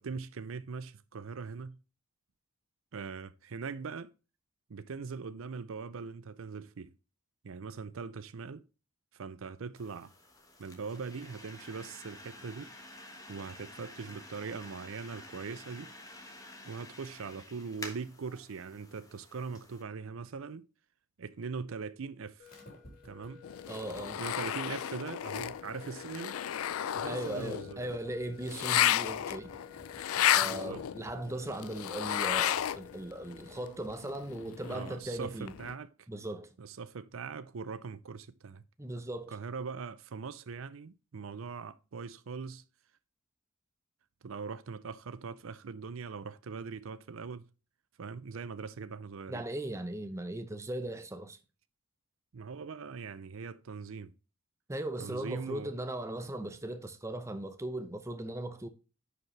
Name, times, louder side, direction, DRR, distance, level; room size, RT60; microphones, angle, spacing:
voice 1, 0.0-1.8 2.9-4.1 4.7-6.9 7.4-8.6 9.1-10.1 10.6-12.7 13.3-15.9 16.7-20.7 21.2-22.5 23.0-23.4 24.2-26.4 26.9-27.8 30.4-30.8 34.7-36.1 36.6-38.6 39.3-42.6 44.2-47.4 48.0-49.4 52.3-54.1 55.0-55.7, right 5 dB, 70° right, 0.5 m, -41 dB
sound 1, 9.8-19.8, left 1 dB, 15° left, 1.3 m, -50 dB
sound 2, 22.4-33.7, left 5 dB, 45° left, 3.3 m, -53 dB
sound 3, 23.4-33.0 33.3-35.7, left 11 dB, 90° left, 0.4 m, -33 dB
voice 2, 23.7-24.2 27.1-29.5 30.3-35.5 36.1-36.5 38.8-39.3 49.3-51.4 54.7-58.7, right 1 dB, 15° right, 0.8 m, -38 dB
10.5 x 5.0 x 3.2 m
head